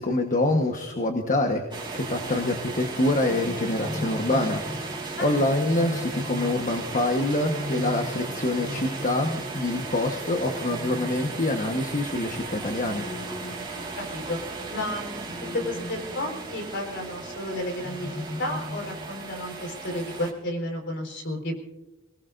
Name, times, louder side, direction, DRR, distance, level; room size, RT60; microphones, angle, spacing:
voice 1, 0.0-13.0, left 1 dB, 35° left, 3 dB, 1.3 m, -26 dB
sound 1, 1.7-20.3, right 3 dB, 20° right, 3.0 m, -36 dB
sound 2, 2.9-14.5 15.3-16.6 17.6-19.1, left 1 dB, 15° left, 0.6 m, -38 dB
voice 2, 14.0-14.4 14.7-15.2 15.5-18.1 18.4-21.6, left 1 dB, 55° left, 2 dB, 4.5 m, -32 dB
28.0 x 19.0 x 2.6 m, 1.1 s
head